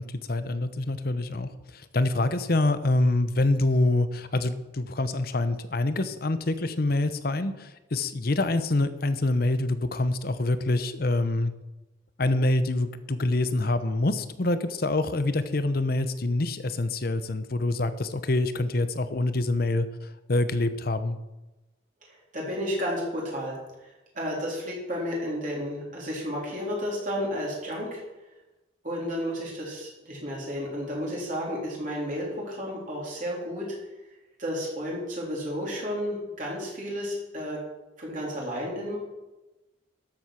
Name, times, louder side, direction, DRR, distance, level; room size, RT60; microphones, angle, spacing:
voice 1, 0.0-11.5 12.2-19.9 20.3-21.2, left 2 dB, 50° left, 12 dB, 0.8 m, -26 dB
voice 2, 22.3-23.6 24.1-28.0 28.8-33.8 34.4-37.6 38.0-39.0, equal, 40° right, -4 dB, 3.6 m, -32 dB
13.0 x 7.8 x 5.9 m, 1.1 s
head